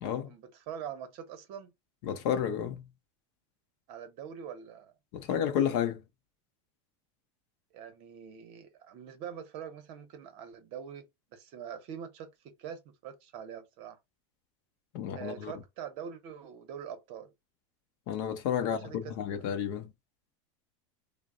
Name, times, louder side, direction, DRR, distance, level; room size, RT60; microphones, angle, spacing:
voice 1, 0.2-1.7 3.9-4.9 7.7-11.1 11.3-14.0 15.2-17.3 18.5-19.4, right 8 dB, 40° right, 0.8 m, -44 dB
voice 2, 2.0-2.9 5.1-6.0 14.9-15.5 18.1-19.9, left 9 dB, 45° left, 0.6 m, -31 dB
3.8 x 2.1 x 3.6 m
supercardioid pair, 170°, 15 cm